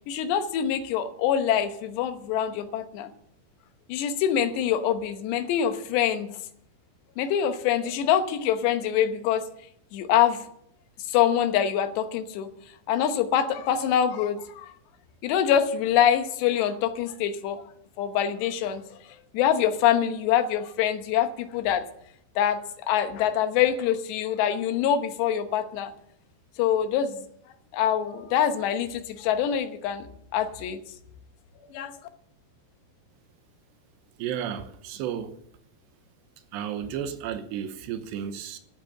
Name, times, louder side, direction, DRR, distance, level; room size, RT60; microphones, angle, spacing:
voice 1, 0.1-3.1 3.9-6.4 7.2-9.4 9.9-10.4 11.1-12.5 12.9-14.7 15.2-17.6 18.0-19.0 19.3-21.8 22.4-22.6 22.9-25.9 26.6-27.2 27.7-30.1 30.3-30.8 31.7-31.9, left 9 dB, 80° left, 3.2 m, -25 dB
voice 2, 34.2-35.4 36.5-38.6, right 9 dB, 85° right, 3.2 m, -33 dB
13.0 x 9.2 x 7.6 m
omnidirectional pair, 4.9 m